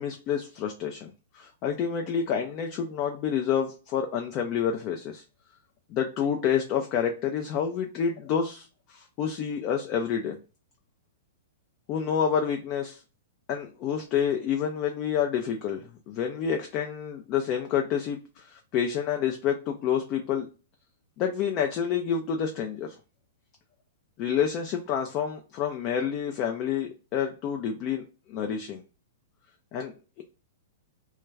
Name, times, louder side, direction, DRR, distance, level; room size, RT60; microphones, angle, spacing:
voice 1, 0.0-5.2 5.9-10.4 11.9-13.0 13.5-15.8 16.1-20.5 21.2-23.0 24.2-28.0 28.3-28.8 29.7-30.2, left 8 dB, 40° left, 3 dB, 0.4 m, -28 dB
2.2 x 2.2 x 3.2 m, 0.33 s
hypercardioid pair, 115°, 0 cm